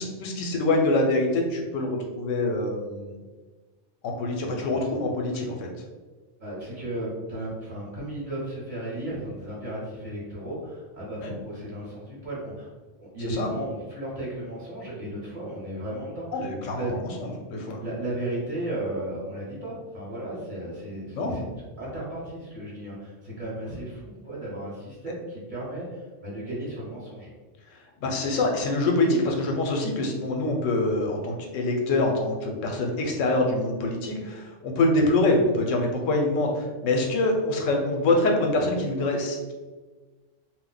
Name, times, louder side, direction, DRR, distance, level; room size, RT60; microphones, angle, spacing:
voice 1, 0.0-3.1 4.0-5.4 11.2-11.3 13.3-13.5 16.3-17.8 21.1-21.4 28.0-39.5, left 2 dB, 85° left, 2 dB, 1.0 m, -25 dB
voice 2, 4.4-4.8 5.3-5.4 6.4-12.7 13.0-16.9 17.8-21.4 21.8-27.3, right 1 dB, 45° right, -6 dB, 0.9 m, -35 dB
2.4 x 2.1 x 3.8 m, 1.3 s
omnidirectional pair, 1.3 m